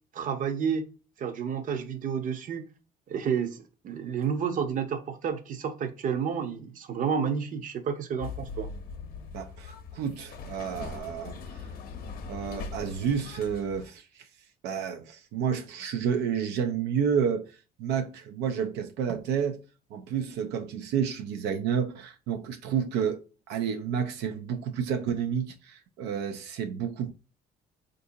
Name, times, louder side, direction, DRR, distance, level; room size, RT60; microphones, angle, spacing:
voice 1, 0.1-0.9 1.2-2.7 3.1-8.7, right 7 dB, 50° right, 0.7 m, -30 dB
sound 1, 8.2-13.9, left 5 dB, 60° left, 0.7 m, -41 dB
voice 2, 9.3-11.7 12.3-14.3 14.6-19.6 19.9-27.1, right 7 dB, 85° right, 0.4 m, -30 dB
3.5 x 2.6 x 2.6 m
cardioid pair, 110°, 17 cm